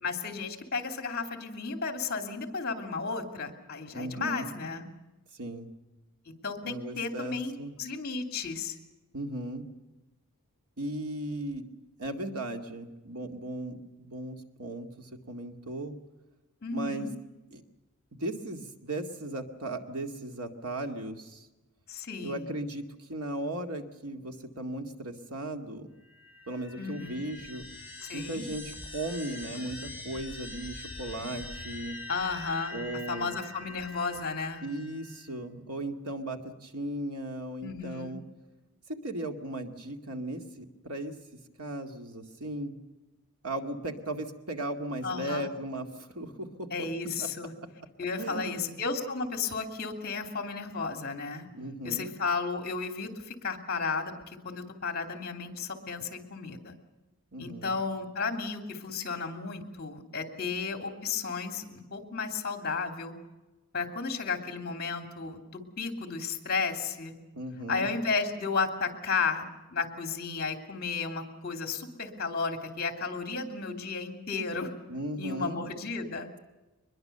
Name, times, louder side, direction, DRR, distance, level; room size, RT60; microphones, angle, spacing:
voice 1, 0.0-4.9 6.3-8.8 16.6-17.1 21.9-22.5 26.8-27.2 28.0-28.4 32.1-32.8 33.1-34.6 37.6-38.2 45.0-45.5 46.7-47.5 48.0-51.5 51.8-56.7 57.4-63.1 63.7-67.1 67.7-69.4 69.7-74.7 75.2-76.3, left 4 dB, 45° left, 6 dB, 2.9 m, -33 dB
voice 2, 3.9-4.5 5.4-5.7 6.6-7.7 9.1-9.7 10.8-11.7 12.0-16.0 16.7-17.1 17.5-17.6 18.2-21.5 22.2-25.9 26.5-27.6 28.1-32.0 32.7-33.4 34.6-38.2 39.0-41.2 41.6-42.8 43.4-46.9 47.2-47.3 48.2-48.8 51.4-52.1 57.3-57.7 67.3-67.9 74.9-75.6, right 1 dB, 85° right, 5 dB, 2.3 m, -37 dB
sound 1, 26.0-35.3, left 2 dB, 10° right, 3.4 m, -44 dB
23.5 x 21.5 x 6.9 m, 1.1 s
head